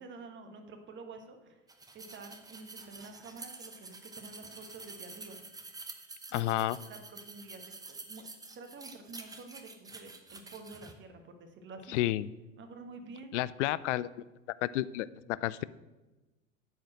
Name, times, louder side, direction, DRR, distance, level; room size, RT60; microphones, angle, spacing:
voice 1, 0.0-1.6 1.9-5.4 6.3-6.5 6.9-8.3 8.5-12.1 12.6-13.3, right 3 dB, 30° right, 6 dB, 1.4 m, -49 dB
sound 1, 1.7-10.9, right 3 dB, 10° right, 0.9 m, -48 dB
voice 2, 6.3-6.8 11.9-12.3 13.3-14.1 14.6-15.6, left 15 dB, 65° left, 18 dB, 0.5 m, -31 dB
8.9 x 5.1 x 7.5 m, 1.1 s
hypercardioid pair, 90°, 40 cm